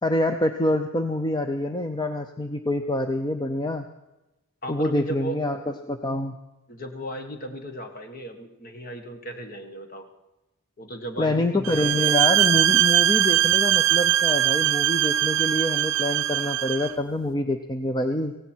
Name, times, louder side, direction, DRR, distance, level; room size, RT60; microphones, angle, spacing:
voice 1, 0.0-3.9 4.7-6.4 11.2-18.3, left 1 dB, 20° left, 6 dB, 0.6 m, -26 dB
voice 2, 4.6-5.4 6.7-10.1 10.8-12.1, right 1 dB, 40° left, 5 dB, 1.5 m, -36 dB
sound 1, 11.6-16.9, right 13 dB, 60° right, 0.5 m, -21 dB
17.5 x 16.5 x 4.5 m, 1.0 s
head